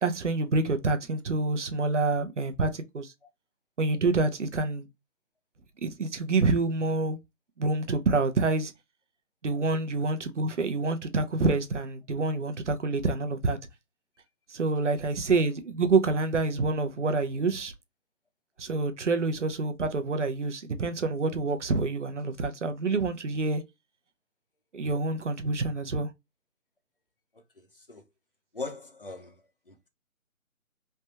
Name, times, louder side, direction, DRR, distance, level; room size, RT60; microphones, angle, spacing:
voice 1, 0.0-3.1 3.8-4.9 5.8-7.2 7.6-8.7 9.4-13.6 14.5-17.7 18.6-23.6 24.7-26.1, right 3 dB, 55° right, 0.6 m, -27 dB
voice 2, 27.3-28.0 28.5-29.4 29.7-29.9, left 3 dB, 40° left, 0.5 m, -41 dB
3.3 x 2.2 x 2.6 m
hypercardioid pair, 175°, 42 cm